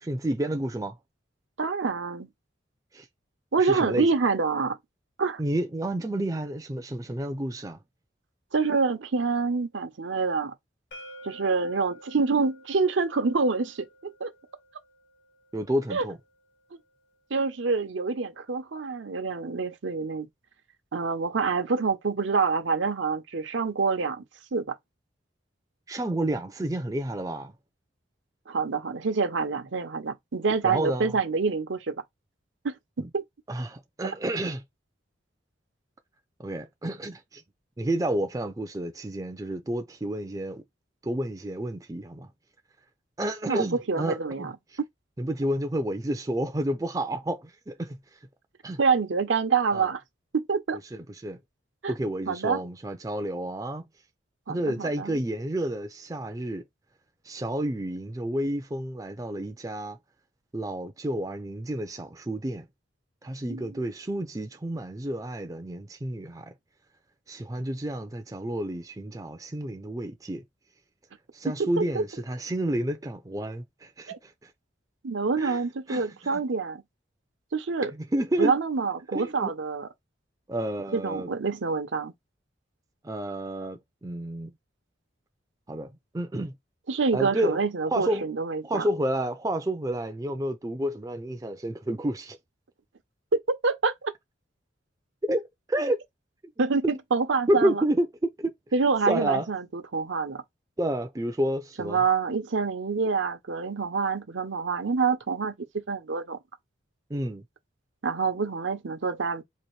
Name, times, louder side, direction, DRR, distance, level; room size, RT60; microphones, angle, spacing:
voice 1, 0.0-1.0 2.9-3.0 3.6-4.1 5.4-7.8 15.5-16.2 25.9-27.5 30.6-31.1 33.0-33.1 33.5-34.6 36.4-37.4 37.8-40.6 41.0-42.3 43.2-44.5 45.2-48.0 48.6-48.8 49.7-49.9 50.9-51.4 51.9-53.9 54.5-56.6 57.3-60.0 60.5-62.6 63.2-66.5 67.3-70.4 71.3-74.3 75.4-75.6 75.9-76.1 76.3-76.4 77.8-78.5 79.1-79.5 80.5-81.3 83.0-84.5 85.7-86.5 87.1-87.6 87.9-88.2 88.6-92.4 95.2-96.0 97.5-98.5 99.1-99.5 100.8-102.0 107.1-107.4, right 1 dB, 20° right, 0.4 m, -30 dB
voice 2, 1.6-2.3 3.5-4.8 5.2-5.4 8.5-10.5 11.2-14.3 15.9-16.0 17.3-20.3 20.9-24.2 24.5-24.8 28.5-32.0 32.6-32.7 33.1-33.2 43.4-44.5 48.8-50.0 50.3-50.8 51.8-51.9 52.3-52.6 54.5-55.1 63.5-63.7 71.5-72.0 74.1-74.2 75.0-76.8 77.5-77.9 78.4-79.9 80.9-82.1 86.9-88.9 93.5-94.1 96.6-97.8 98.7-100.4 101.8-105.5 105.9-106.4 108.0-109.4, right 4 dB, 80° right, 0.7 m, -26 dB
sound 1, 10.9-16.7, equal, 75° left, 1.3 m, -51 dB
4.1 x 2.6 x 3.1 m
head